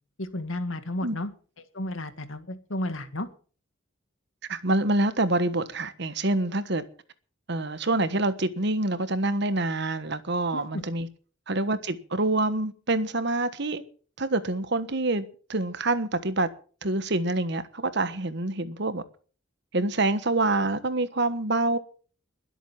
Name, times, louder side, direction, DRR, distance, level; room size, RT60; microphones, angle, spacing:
voice 1, 0.2-1.3 1.6-3.3 10.5-10.8, left 1 dB, 75° left, 1.9 m, -33 dB
voice 2, 4.5-6.8 7.5-11.1 11.5-13.8 14.2-16.5 16.8-19.0 19.7-21.8, right 2 dB, 55° right, 1.4 m, -26 dB
21.5 x 8.3 x 5.9 m
head